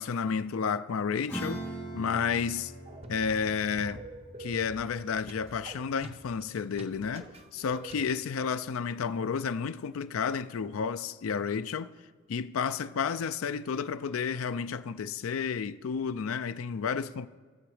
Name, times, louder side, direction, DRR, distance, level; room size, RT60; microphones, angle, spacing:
voice 1, 0.0-1.6 1.9-2.7 3.1-4.0 4.4-11.9 12.3-17.3, left 6 dB, 85° left, 0.4 m, -31 dB
Acoustic guitar / Strum, 1.3-7.3, right 1 dB, 10° left, 2.5 m, -43 dB
sound 1, 2.9-8.0, right 2 dB, 30° right, 0.6 m, -47 dB
14.5 x 7.0 x 4.9 m
head